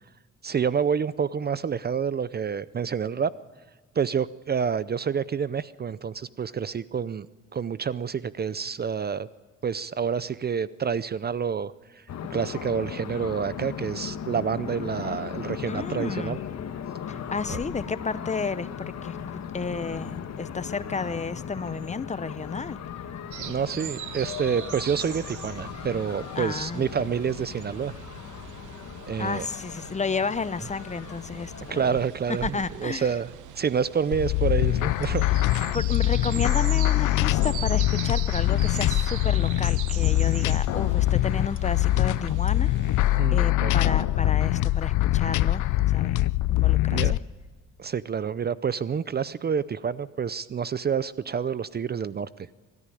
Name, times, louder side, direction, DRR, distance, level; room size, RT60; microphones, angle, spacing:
voice 1, 0.4-3.3 4.0-7.3 7.5-9.3 9.6-12.0 12.3-16.4 17.5-17.6 23.4-27.9 29.1-29.5 31.7-33.3 33.6-35.2 43.2-43.7 46.9-47.1 47.8-52.3, right 7 dB, 35° right, 18 dB, 0.5 m, -28 dB
sound 1, 12.1-32.0, left 8 dB, 60° left, 1.5 m, -37 dB
voice 2, 15.7-16.4 17.1-22.8 26.4-26.9 29.2-32.0 32.4-33.1 35.7-46.2 46.5-47.2, left 4 dB, 25° left, 15 dB, 0.8 m, -32 dB
sound 2, 23.3-43.2, right 11 dB, 75° right, 1.1 m, -41 dB
sound 3, 34.1-47.2, left 16 dB, 80° left, 0.5 m, -23 dB
22.0 x 13.5 x 9.9 m, 1.5 s
cardioid pair, 90°, 30 cm